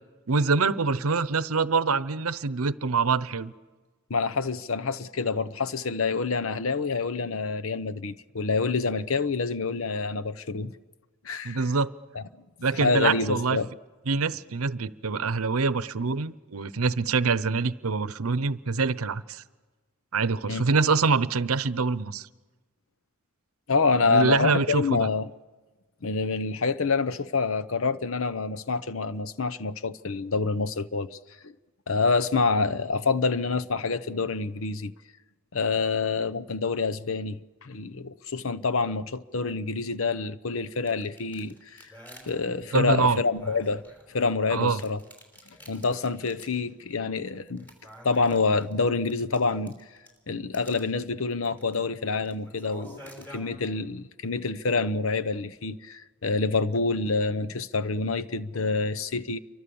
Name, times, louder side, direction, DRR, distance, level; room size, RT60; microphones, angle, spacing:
voice 1, 0.3-3.5 11.4-11.9 12.6-13.6 14.1-19.4 20.1-22.3 24.1-25.1 42.7-43.2 44.5-44.8, right 4 dB, 90° right, 0.8 m, -25 dB
voice 2, 4.1-10.8 11.2-11.6 12.1-12.2 12.7-13.7 20.5-20.6 23.7-25.3 26.0-31.2 31.4-31.5 31.9-34.9 35.5-41.9 42.2-43.8 44.1-45.0 45.7-47.7 48.0-49.8 50.3-59.4, left 4 dB, 65° left, 0.9 m, -27 dB
sound 1, 40.6-44.3 44.7-46.7 46.9-47.0 47.5-50.2 50.5-50.8 51.3-51.8 52.1-53.4, equal, 10° left, 5.3 m, -49 dB
28.5 x 24.5 x 7.1 m
head